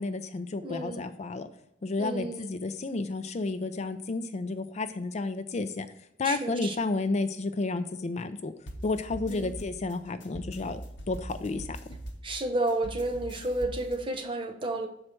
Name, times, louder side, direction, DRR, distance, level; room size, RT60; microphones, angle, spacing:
voice 1, 0.0-1.5 1.8-5.9 6.2-8.5 8.8-10.8 11.1-11.8, left 3 dB, 40° left, 11 dB, 0.4 m, -31 dB
voice 2, 0.6-1.0 2.0-2.5 6.2-6.7 9.3-9.5 12.2-14.9, right 2 dB, 30° right, 4 dB, 0.9 m, -31 dB
sound 1, 8.7-14.0, right 1 dB, 70° left, 1.0 m, -42 dB
6.4 x 4.4 x 5.9 m, 0.79 s
head